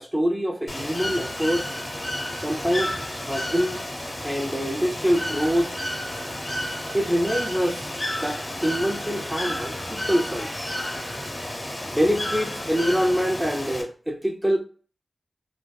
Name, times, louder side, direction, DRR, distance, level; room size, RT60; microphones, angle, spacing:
voice 1, 0.0-1.7 2.4-2.9 3.3-3.8 4.2-5.7 6.9-10.5 11.9-14.6, equal, 5° right, 0.4 m, -25 dB
Bird / Water, 0.7-13.8, left 1 dB, 30° left, 0.8 m, -31 dB
3.1 x 2.4 x 2.2 m
wide cardioid pair, 85°, 0 cm